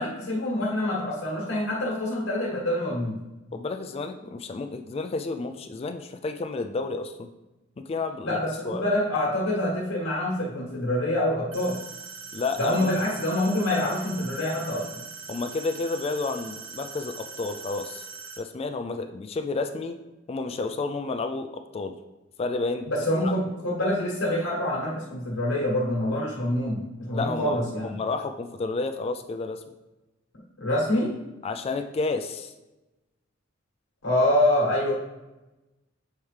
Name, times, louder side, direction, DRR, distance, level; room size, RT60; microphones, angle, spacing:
voice 1, 0.0-3.1 8.2-11.8 12.6-14.8 22.9-27.9 30.6-31.1 34.0-34.9, left 1 dB, 75° left, -4 dB, 1.4 m, -26 dB
voice 2, 3.5-7.3 7.8-8.4 8.6-8.9 12.3-12.7 15.3-18.1 18.4-20.0 20.3-22.0 22.4-22.9 23.2-23.3 27.1-29.6 31.4-32.5, left 3 dB, 30° left, 7 dB, 0.3 m, -31 dB
sound 1, 11.5-18.4, right 5 dB, 80° right, 0.9 m, -41 dB
7.1 x 4.5 x 3.3 m, 1.0 s
head